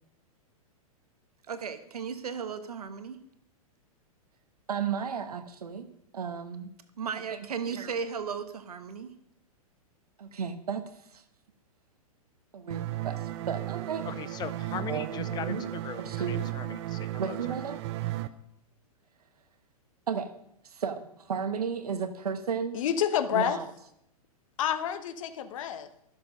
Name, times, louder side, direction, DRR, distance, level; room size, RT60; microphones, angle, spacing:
voice 1, 1.5-3.2 4.7-5.9 6.1-9.1 10.2-10.8 11.1-11.2 12.5-14.1 14.8-15.6 16.0-16.5 17.2-17.8 20.1-20.3 20.6-22.8 23.3-23.7, right 6 dB, 80° right, 1.2 m, -34 dB
sound 1, 12.7-18.3, right 15 dB, 45° right, 0.7 m, -35 dB
voice 2, 14.0-17.4, left 9 dB, 20° left, 0.6 m, -39 dB
voice 3, 22.7-23.6 24.6-25.9, left 9 dB, 60° left, 1.1 m, -28 dB
13.0 x 7.1 x 5.2 m
hypercardioid pair, 120°, 19 cm